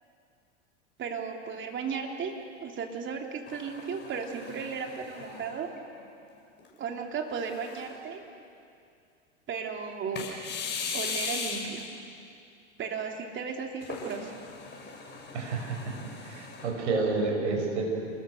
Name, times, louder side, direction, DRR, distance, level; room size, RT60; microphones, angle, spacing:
voice 1, 1.0-2.3 2.6-5.7 6.8-8.2 9.5-10.3 10.9-11.8 12.8-14.3, right 6 dB, 30° right, 2 dB, 3.1 m, -35 dB
sound 1, 3.5-6.0 6.6-6.7 7.4-8.1 10.2-11.9 13.8-16.7, left 5 dB, 30° left, 6.8 m, -38 dB
voice 2, 15.3-15.9 16.3-17.8, right 3 dB, 75° right, 1 dB, 6.4 m, -29 dB
28.5 x 19.5 x 6.6 m, 2.5 s
hypercardioid pair, 90°, 36 cm